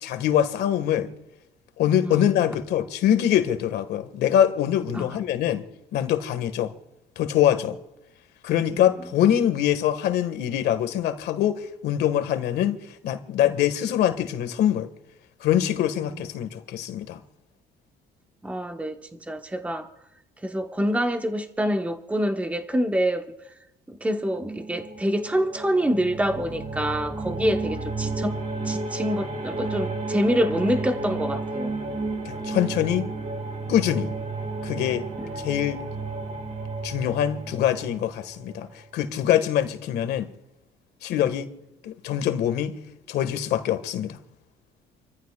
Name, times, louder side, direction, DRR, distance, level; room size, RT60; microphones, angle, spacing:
voice 1, 0.0-1.1 1.8-5.6 5.9-6.7 7.2-7.8 8.4-12.8 13.0-14.9 15.4-17.2 32.2-33.1 33.7-34.1 34.6-35.0 35.4-35.8 36.8-38.7 38.9-40.3 41.0-41.5 41.8-42.8 43.1-44.2, left 10 dB, 75° left, 1.7 m, -24 dB
voice 2, 8.7-9.1 16.1-16.2 18.4-19.9 20.4-23.3 23.9-28.4 28.6-31.8 35.2-35.5 41.1-41.3, equal, 10° right, 1.2 m, -26 dB
sound 1, 24.1-38.8, right 3 dB, 45° right, 6.4 m, -32 dB
29.0 x 14.5 x 2.4 m
cardioid pair, 110°, 17 cm